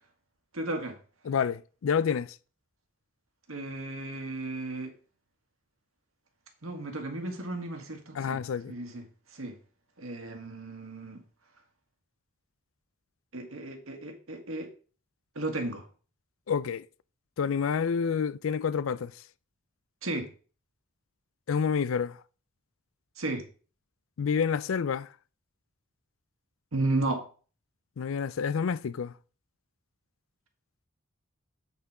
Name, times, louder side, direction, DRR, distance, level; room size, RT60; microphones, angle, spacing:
voice 1, 0.5-1.0 3.5-4.9 6.6-8.4 8.7-9.1 9.3-9.6 10.0-11.2 13.3-14.7 15.4-15.9 20.0-20.3 23.2-23.5 26.7-27.3, right 2 dB, 85° right, 1.9 m, -34 dB
voice 2, 1.2-2.4 8.2-8.7 16.5-16.8 17.4-19.1 21.5-22.2 24.2-25.1 28.0-29.1, left 6 dB, 75° left, 0.4 m, -28 dB
8.2 x 5.7 x 4.9 m
head